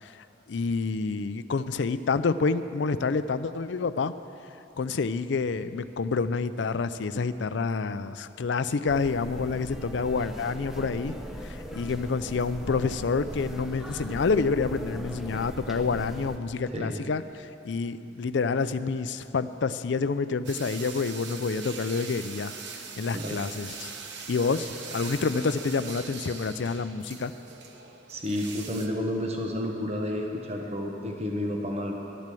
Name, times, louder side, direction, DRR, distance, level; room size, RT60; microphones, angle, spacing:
voice 1, 0.0-4.1 4.8-11.1 11.4-22.5 23.0-23.9 24.3-27.3, left 4 dB, 60° left, 13 dB, 0.4 m, -28 dB
sound 1, 8.9-16.4, equal, ahead, 0.7 m, -39 dB
sound 2, 20.4-28.9, right 5 dB, 60° right, 1.0 m, -41 dB
voice 2, 28.1-31.9, left 1 dB, 35° right, 1 dB, 1.1 m, -31 dB
11.5 x 10.5 x 7.6 m, 3.0 s
head